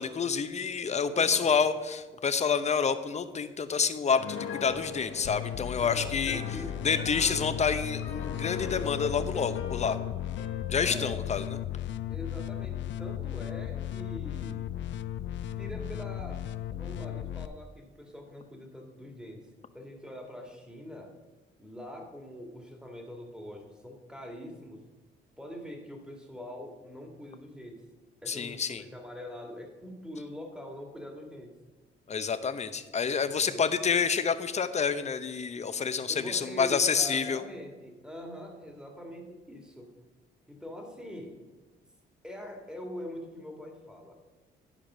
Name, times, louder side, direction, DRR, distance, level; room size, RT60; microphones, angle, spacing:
voice 1, 0.0-6.4 6.8-10.0 10.7-11.4 28.3-28.8 32.1-37.4, left 6 dB, 35° left, 10 dB, 0.7 m, -28 dB
voice 2, 0.8-1.5 5.8-7.1 10.9-11.2 12.1-14.7 15.5-16.4 16.7-19.5 19.7-21.1 21.6-24.8 25.4-27.9 28.2-31.6 33.4-33.6 36.1-39.9 40.5-41.4 42.2-44.1, equal, 5° right, 2 dB, 2.0 m, -43 dB
Piano, 4.2-11.1, left 6 dB, 85° left, 1.3 m, -41 dB
sound 1, 5.2-17.5, left 11 dB, 65° left, 0.5 m, -36 dB
10.5 x 5.0 x 6.1 m, 1.2 s
cardioid pair, 90°, 20 cm